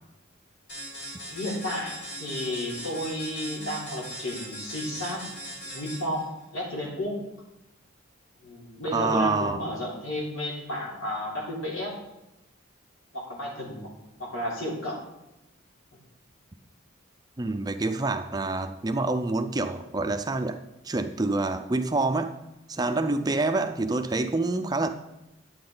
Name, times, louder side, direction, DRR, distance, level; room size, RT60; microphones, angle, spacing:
sound 1, 0.7-6.2, right 1 dB, 55° left, 3.3 m, -39 dB
voice 1, 1.3-5.3 5.6-6.2 6.5-7.2 8.4-12.0 13.1-13.9 14.2-15.0, left 1 dB, 90° left, -4 dB, 3.6 m, -32 dB
voice 2, 8.9-9.6 17.4-20.6 20.8-22.4 22.7-24.9, right 3 dB, 20° right, 8 dB, 0.4 m, -27 dB
10.5 x 8.6 x 3.9 m, 0.93 s
head